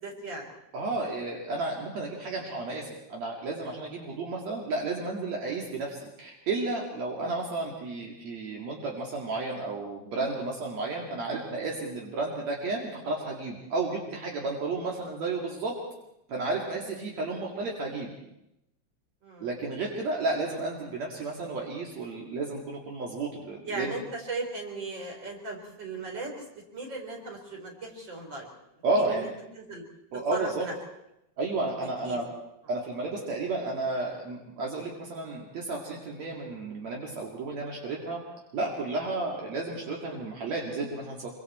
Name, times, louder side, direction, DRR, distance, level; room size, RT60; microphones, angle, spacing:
voice 1, 0.0-0.6 16.6-16.8 19.2-19.5 23.6-28.5 28.9-29.3 29.5-29.8 30.3-30.7 31.8-32.2, right 2 dB, 40° right, 0 dB, 5.0 m, -37 dB
voice 2, 0.7-15.8 16.3-18.2 19.4-23.9 28.8-29.3 30.1-30.7 31.4-32.3 32.7-38.2 38.5-41.3, right 3 dB, 65° right, -2 dB, 3.6 m, -32 dB
26.0 x 24.5 x 4.4 m, 0.85 s
omnidirectional pair, 3.3 m